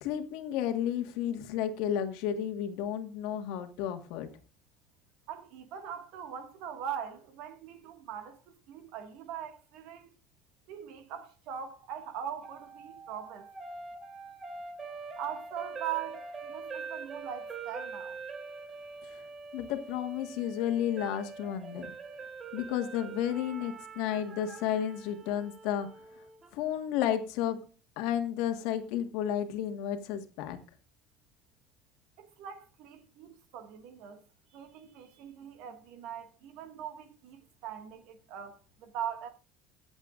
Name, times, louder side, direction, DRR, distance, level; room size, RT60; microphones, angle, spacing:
voice 1, 0.0-4.3 19.5-21.9 22.5-25.9 26.5-27.6 28.0-30.6, left 10 dB, 70° left, 1.5 m, -32 dB
voice 2, 5.3-10.1 10.7-13.5 15.2-18.2 32.2-34.2 34.5-39.3, right 9 dB, 60° right, 1.8 m, -41 dB
sound 1, 12.4-26.5, right 4 dB, 20° right, 1.0 m, -44 dB
23.0 x 8.0 x 2.5 m
cardioid pair, 175°, 0 cm